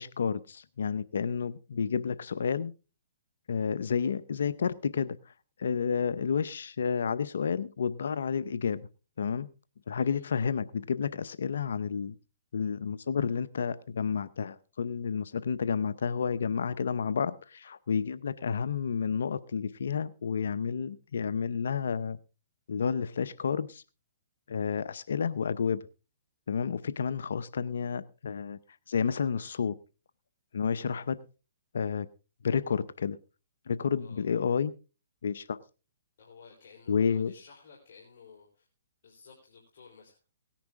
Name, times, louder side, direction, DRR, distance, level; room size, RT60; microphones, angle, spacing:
voice 1, 0.0-2.7 3.5-5.3 5.6-8.9 9.2-9.5 9.9-12.1 12.5-22.2 22.7-23.8 24.5-25.8 26.5-28.6 28.9-29.8 30.5-31.2 31.7-32.1 32.4-33.2 33.7-34.7 35.2-35.6 36.9-37.3, left 6 dB, 75° left, 0.7 m, -30 dB
voice 2, 36.2-38.7 39.0-40.2, left 5 dB, 55° left, 3.9 m, -54 dB
18.0 x 10.0 x 3.6 m
hypercardioid pair, 140°, 0 cm